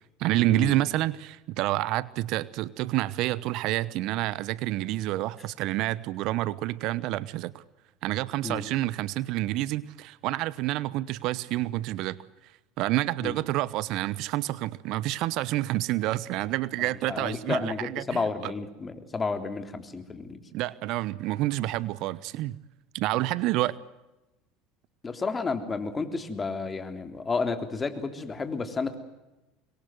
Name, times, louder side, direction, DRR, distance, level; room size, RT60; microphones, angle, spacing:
voice 1, 0.2-7.6 8.0-12.2 12.8-18.5 20.5-22.6 22.9-23.8, right 16 dB, 60° right, 20 dB, 0.9 m, -28 dB
voice 2, 16.8-20.4 25.0-29.0, left 4 dB, 25° left, 8 dB, 3.5 m, -31 dB
25.5 x 22.5 x 7.8 m, 1.0 s
hypercardioid pair, 80°, 0 cm